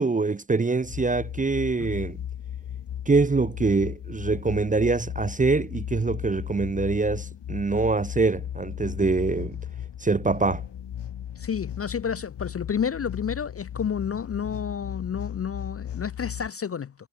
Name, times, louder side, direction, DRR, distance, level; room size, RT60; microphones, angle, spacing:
voice 1, 0.0-2.2 3.1-9.6 10.0-10.6, right 3 dB, 15° right, 0.6 m, -24 dB
sound 1, 0.8-16.5, left 10 dB, 55° left, 2.5 m, -36 dB
voice 2, 11.4-16.9, left 7 dB, 30° left, 0.5 m, -30 dB
wide cardioid pair, 165°, 49 cm